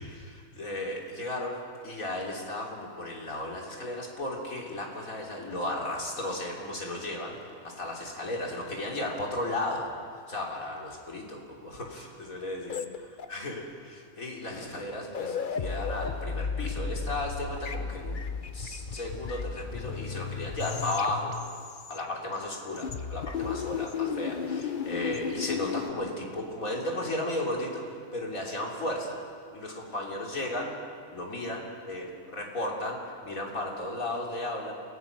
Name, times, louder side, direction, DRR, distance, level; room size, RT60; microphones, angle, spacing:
voice 1, 0.2-1.6 1.8-9.9 10.3-12.8 13.3-18.2 18.5-21.3 21.9-29.2 29.5-30.7 31.1-34.7, left 1 dB, 70° left, -2 dB, 3.7 m, -34 dB
sound 1, 12.7-13.6 14.7-14.8 15.0-22.4 22.7-25.9, left 6 dB, 40° left, 0.8 m, -34 dB
28.5 x 18.0 x 6.2 m, 2.1 s
omnidirectional pair, 1.5 m